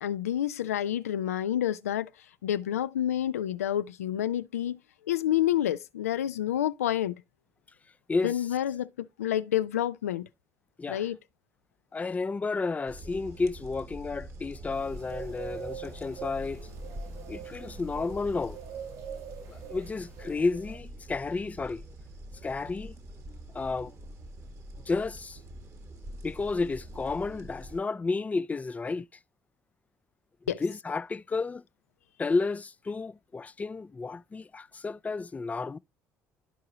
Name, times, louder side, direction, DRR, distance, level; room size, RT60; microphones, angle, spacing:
voice 1, 0.0-2.1 2.4-4.8 5.1-7.1 8.2-10.3 10.9-11.2 30.5-30.6, left 11 dB, 90° left, 0.4 m, -29 dB
voice 2, 11.9-16.7 17.3-18.6 19.5-21.8 22.4-22.9 23.5-23.9 24.9-25.4 26.2-29.1 30.6-31.6 32.2-35.8, left 3 dB, 20° left, 0.4 m, -31 dB
sound 1, 12.9-27.8, right 1 dB, 40° right, 1.5 m, -45 dB
sound 2, 14.7-20.8, right 8 dB, 65° right, 4.6 m, -44 dB
12.0 x 4.7 x 2.8 m
hypercardioid pair, 60°, 8 cm